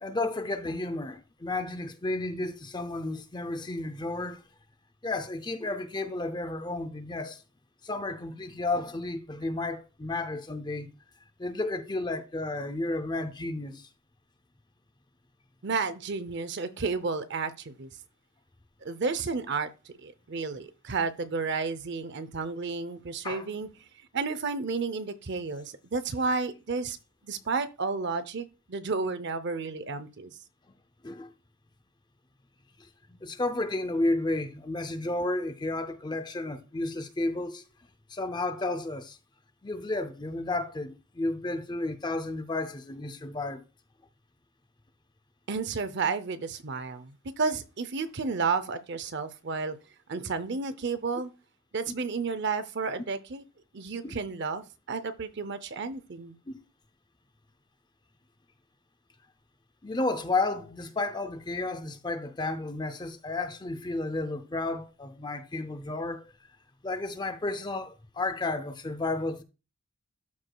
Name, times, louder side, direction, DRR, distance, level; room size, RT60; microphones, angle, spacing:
voice 1, 0.0-4.4 5.0-7.4 7.8-10.9 11.4-13.9 23.2-23.5 31.0-31.3 32.8-37.6 38.1-39.2 39.6-43.6 54.0-54.2 56.5-56.6 59.8-66.3 66.8-69.4, left 2 dB, 20° left, 0.5 m, -32 dB
voice 2, 15.6-17.9 18.8-23.7 24.1-27.0 27.2-30.3 45.5-49.8 50.1-51.3 51.7-53.4 53.7-56.4, right 4 dB, 50° right, 0.6 m, -32 dB
12.5 x 4.7 x 2.3 m
head